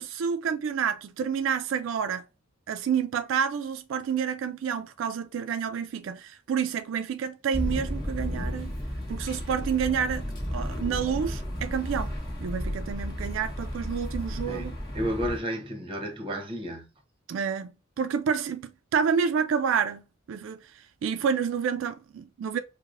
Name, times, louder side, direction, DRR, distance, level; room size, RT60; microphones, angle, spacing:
voice 1, 0.0-2.2 2.7-8.7 9.1-12.1 12.4-14.8 17.3-17.7 18.0-22.6, right 7 dB, 85° right, 0.3 m, -29 dB
sound 1, 7.5-15.4, equal, 20° left, 1.1 m, -33 dB
voice 2, 14.5-16.9, equal, 30° right, 0.8 m, -32 dB
4.6 x 2.1 x 2.5 m
head